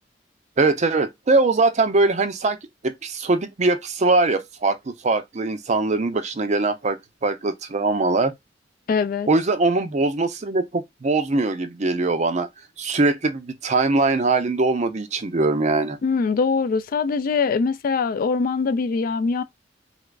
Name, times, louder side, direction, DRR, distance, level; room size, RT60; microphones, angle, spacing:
voice 1, 0.6-2.6 2.8-8.3 9.3-12.5 12.8-16.0, right 3 dB, 40° right, 0.5 m, -21 dB
voice 2, 8.9-9.3 16.0-19.4, left 5 dB, 50° left, 0.3 m, -22 dB
3.3 x 3.0 x 2.4 m
head